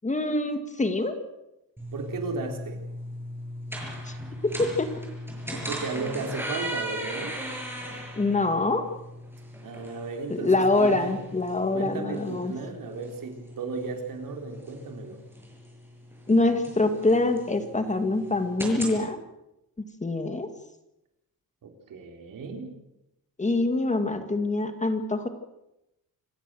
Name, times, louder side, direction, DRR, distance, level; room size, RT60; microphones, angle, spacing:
voice 1, 0.0-1.1 4.1-4.2 4.6-4.9 5.5-5.6 8.2-8.8 10.3-12.5 16.3-19.2 20.0-20.5 23.4-25.3, left 2 dB, 20° left, 8 dB, 2.0 m, -25 dB
sound 1, 1.8-19.0, equal, 5° right, 6.9 m, -38 dB
voice 2, 1.9-2.8 5.5-7.4 9.6-11.2 11.7-15.2 21.6-22.7, right 4 dB, 65° right, 4 dB, 4.3 m, -35 dB
27.0 x 15.5 x 7.7 m, 0.88 s
cardioid pair, 130°, 36 cm